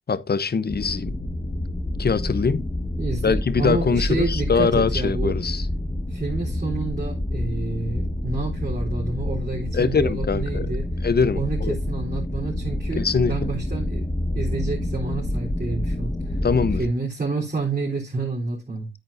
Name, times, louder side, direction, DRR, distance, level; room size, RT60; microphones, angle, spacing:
voice 1, 0.1-1.1 2.0-2.6 3.2-5.7 9.7-10.7 11.0-11.8 13.0-13.5 16.4-16.8, left 5 dB, 50° left, 0.8 m, -23 dB
sound 1, 0.7-16.8, left 1 dB, 20° left, 1.4 m, -28 dB
voice 2, 3.0-5.3 6.1-10.9 11.3-14.1 14.3-16.4 16.8-18.9, right 3 dB, 45° right, 3.7 m, -29 dB
9.3 x 9.1 x 2.6 m
cardioid pair, 70°, 21 cm